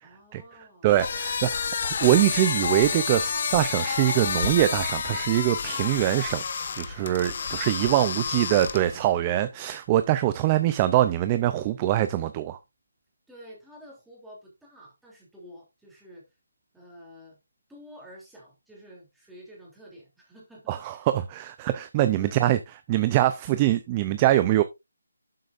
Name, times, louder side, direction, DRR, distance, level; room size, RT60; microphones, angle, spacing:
voice 1, 0.0-1.2 7.2-8.2 13.3-16.2 16.7-17.4 17.7-21.0 22.2-22.5, equal, ahead, 3.1 m, -49 dB
voice 2, 0.8-6.4 6.8-12.6 20.7-22.6 22.9-24.6, right 14 dB, 15° right, 0.5 m, -23 dB
sound 1, 0.9-9.1, left 6 dB, 40° left, 1.2 m, -29 dB
12.0 x 7.6 x 2.5 m
hypercardioid pair, 170°, 0 cm